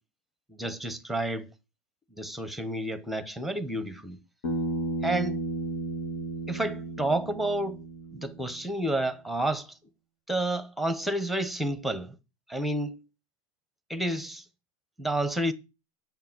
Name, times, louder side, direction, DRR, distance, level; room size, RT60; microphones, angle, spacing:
voice 1, 0.5-1.5 2.2-4.2 5.0-5.4 6.5-7.8 8.1-9.7 10.3-12.1 12.5-13.0 13.9-14.4 15.0-15.5, right 1 dB, ahead, 1.0 m, -30 dB
Bass guitar, 4.4-8.8, right 2 dB, 90° left, 3.4 m, -33 dB
9.2 x 5.5 x 7.3 m
supercardioid pair, 140°, 18 cm